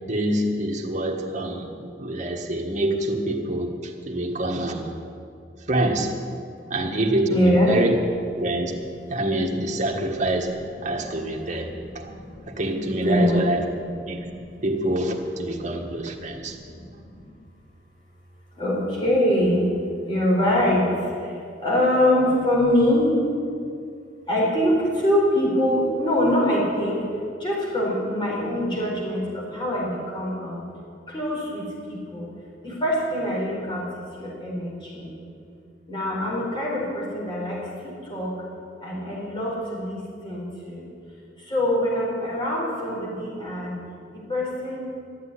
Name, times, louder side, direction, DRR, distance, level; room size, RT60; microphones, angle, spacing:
voice 1, 0.1-5.0 5.7-6.1 6.7-7.9 8.4-8.8 9.1-10.5 10.8-11.7 11.9-12.2 12.5-13.6 14.0-14.3 14.6-16.6, right 1 dB, 40° right, 1 dB, 1.6 m, -26 dB
voice 2, 7.3-7.8 12.0-12.5 13.0-13.4 14.1-14.2 16.2-17.3 18.5-19.7 20.0-23.2 24.3-27.0 27.4-30.6 31.1-32.3 32.6-33.9 34.2-35.1 35.9-38.4 38.8-40.8 41.4-43.8 44.1-44.9, left 1 dB, 25° left, -5 dB, 4.6 m, -24 dB
12.5 x 8.2 x 10.0 m, 2.4 s
head